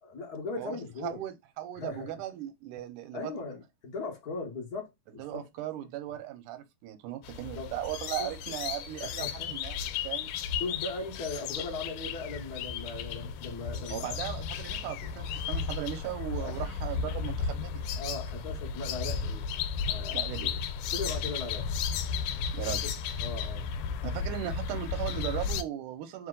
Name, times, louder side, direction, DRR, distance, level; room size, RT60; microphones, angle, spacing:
voice 1, 0.0-1.2 1.7-2.1 3.1-5.5 7.5-7.7 8.2-8.3 9.0-9.6 10.6-14.2 16.4-16.7 17.9-19.5 19.8-20.6 20.9-21.7 22.7-22.9 23.2-23.7, left 3 dB, 60° left, 0.9 m, -39 dB
voice 2, 0.6-3.3 5.2-9.8 10.0-10.3 13.9-17.8 20.1-20.5 22.5-22.8 24.0-26.3, right 12 dB, 90° right, 2.2 m, -37 dB
sound 1, 7.2-25.6, left 6 dB, 85° left, 2.0 m, -34 dB
4.5 x 2.8 x 3.7 m
omnidirectional pair, 3.5 m